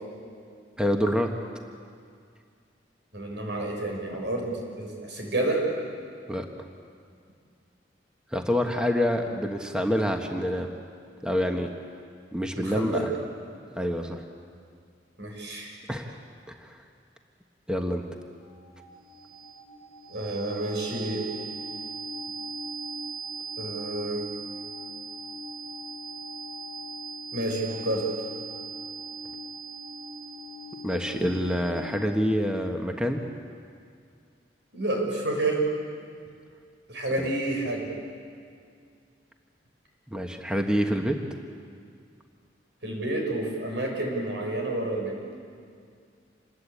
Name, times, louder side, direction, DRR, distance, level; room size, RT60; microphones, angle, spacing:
voice 1, 0.8-1.3 6.3-6.5 8.3-10.7 11.2-11.7 12.3-13.1 13.7-14.2 15.9-16.2 16.5-16.8 17.7-18.0 30.8-33.2 40.1-41.2 45.3-45.4, equal, 5° right, 3 dB, 1.3 m, -27 dB
voice 2, 3.1-5.7 12.5-13.1 15.2-15.7 20.1-21.3 23.6-24.3 27.3-28.1 34.7-35.7 36.9-37.9 42.8-45.2, right 2 dB, 75° right, 1 dB, 6.2 m, -29 dB
sound 1, 18.5-32.3, right 3 dB, 35° right, 4.7 m, -39 dB
27.5 x 20.5 x 8.6 m, 2.2 s
head